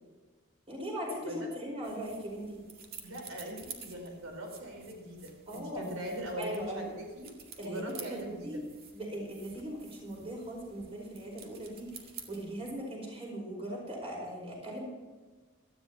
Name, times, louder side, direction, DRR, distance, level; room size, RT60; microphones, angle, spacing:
voice 1, 0.7-2.6 5.5-5.8 6.4-6.9 7.6-8.6 8.9-14.8, equal, 30° right, -2 dB, 5.3 m, -39 dB
sound 1, 1.8-12.7, right 6 dB, 45° right, 2.1 m, -51 dB
voice 2, 3.0-7.3 7.6-8.6, right 1 dB, 90° right, 1 dB, 4.6 m, -41 dB
18.0 x 13.5 x 3.0 m, 1.3 s
head